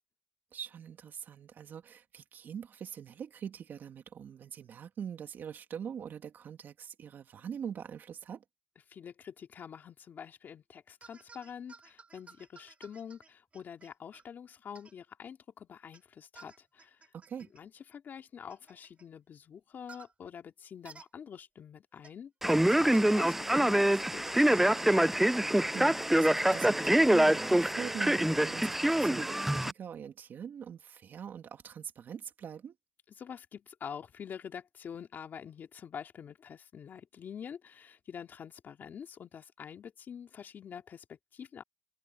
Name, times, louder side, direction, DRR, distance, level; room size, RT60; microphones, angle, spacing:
voice 1, 0.5-8.4 17.1-17.5 25.7-32.8, right 8 dB, 65° right, 2.8 m, -43 dB
voice 2, 8.9-17.0 17.5-25.1 33.2-41.6, left 7 dB, 60° left, 2.9 m, -46 dB
sound 1, 11.0-14.2 14.7-14.9 15.9-16.0 16.4-17.6 18.5-19.0 19.9-20.1 20.8-21.1 22.0-22.1 22.9-23.3 24.2-25.0, right 4 dB, 35° right, 4.0 m, -53 dB
Male speech man speaking, 22.4-29.7, right 1 dB, 5° right, 0.5 m, -25 dB
cardioid pair, 75°, 4 cm